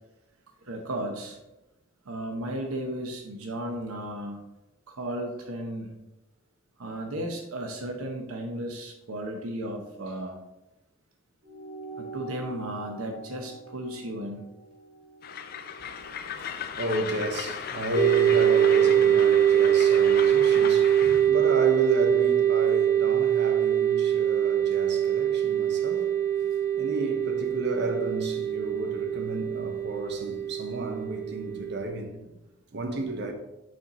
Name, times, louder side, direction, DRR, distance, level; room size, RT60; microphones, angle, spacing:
voice 1, 0.6-1.4 2.0-4.4 4.9-5.9 6.8-10.4 12.0-14.5, right 1 dB, 85° right, 0.8 m, -34 dB
sound 1, 11.4-16.2, right 3 dB, 35° right, 2.2 m, -44 dB
Train, 15.2-21.3, left 7 dB, 45° left, 0.4 m, -36 dB
voice 2, 16.0-26.5 26.7-32.2 32.7-33.3, right 1 dB, 55° right, 0.8 m, -32 dB
sound 2, 17.9-31.8, right 10 dB, 15° left, 0.8 m, -23 dB
6.3 x 4.4 x 4.1 m
head